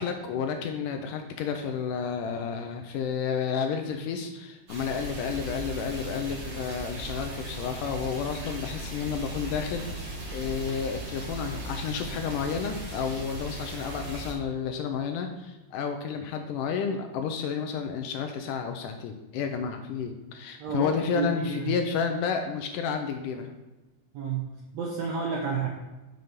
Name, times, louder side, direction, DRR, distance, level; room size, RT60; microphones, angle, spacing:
voice 1, 0.0-23.5, left 6 dB, 80° left, 5 dB, 2.0 m, -31 dB
sound 1, 4.7-14.3, right 2 dB, 50° right, 2.4 m, -37 dB
voice 2, 20.6-21.7 24.1-24.5 24.7-25.7, right 5 dB, 75° right, -1 dB, 1.5 m, -30 dB
6.5 x 5.4 x 6.0 m, 1.1 s
omnidirectional pair, 4.1 m